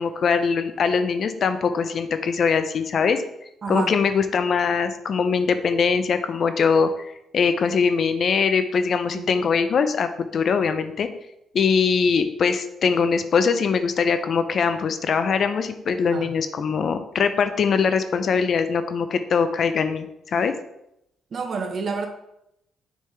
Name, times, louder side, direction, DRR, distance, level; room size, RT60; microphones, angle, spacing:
voice 1, 0.0-3.2 3.7-6.9 7.3-11.1 11.5-20.1 20.3-20.5, left 5 dB, 55° left, 10 dB, 0.6 m, -22 dB
voice 2, 3.6-3.9 9.1-9.3 16.1-16.3 21.3-22.1, right 4 dB, 50° right, 5 dB, 1.0 m, -28 dB
6.7 x 5.3 x 3.3 m, 0.81 s
cardioid pair, 90°, 0 cm